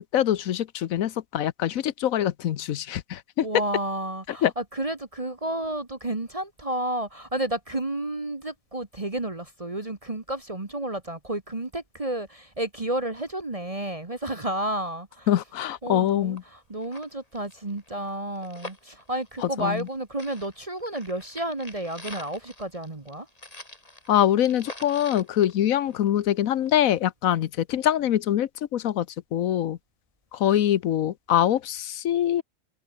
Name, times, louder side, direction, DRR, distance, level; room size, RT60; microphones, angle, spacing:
voice 1, 0.1-3.5 4.4-4.5 15.3-16.4 19.6-19.8 24.1-29.1 29.3-29.8 30.3-32.4, left 11 dB, 90° left, 1.2 m, -24 dB
voice 2, 3.4-15.3 15.8-23.3, right 1 dB, 25° right, 1.7 m, -31 dB
sound 1, 16.0-16.1 16.4-16.5 16.8-19.9 20.2-26.3 26.7-26.8, left 1 dB, 25° left, 3.9 m, -45 dB
omnidirectional pair, 1.4 m